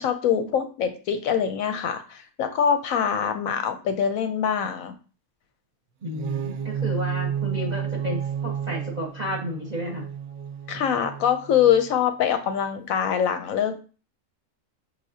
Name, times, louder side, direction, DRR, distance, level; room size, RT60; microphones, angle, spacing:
voice 1, 0.0-4.9 10.7-13.8, left 8 dB, 70° left, 8 dB, 0.9 m, -24 dB
voice 2, 6.0-10.1, left 1 dB, 35° right, 0 dB, 0.8 m, -32 dB
sound 1, 6.0-12.0, right 8 dB, 70° right, 1.0 m, -31 dB
5.7 x 3.2 x 2.7 m, 0.36 s
omnidirectional pair, 1.6 m